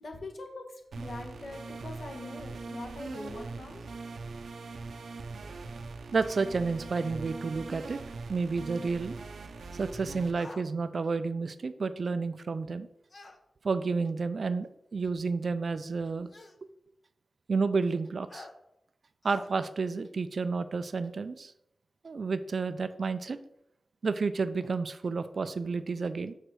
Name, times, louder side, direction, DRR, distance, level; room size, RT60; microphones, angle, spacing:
voice 1, 0.0-3.8, left 2 dB, 55° left, 3 dB, 1.4 m, -42 dB
sound 1, 0.9-10.3, right 3 dB, 75° right, 0.7 m, -42 dB
voice 2, 6.1-8.0 8.3-9.2 9.7-12.9 13.6-16.3 17.5-18.5 19.2-21.5 22.0-23.4 24.0-26.3, right 4 dB, 50° right, 12 dB, 0.4 m, -31 dB
sound 2, 10.3-10.7 13.1-13.4 14.6-14.7 16.3-16.6 18.3-18.5 19.2-19.5, left 2 dB, 40° left, 0.8 m, -47 dB
6.4 x 4.9 x 6.1 m, 0.81 s
wide cardioid pair, 135°, 0 cm